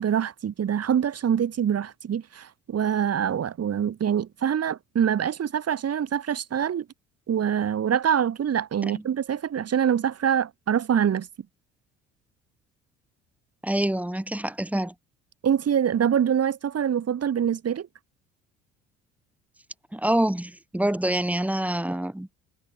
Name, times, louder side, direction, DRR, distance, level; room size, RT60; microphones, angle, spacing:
voice 1, 0.0-6.9 7.3-11.3 15.4-17.9, right 8 dB, 45° right, 5.4 m, -25 dB
voice 2, 13.6-14.9 19.9-22.3, right 1 dB, 5° right, 4.6 m, -26 dB
hypercardioid pair, 60°, 34 cm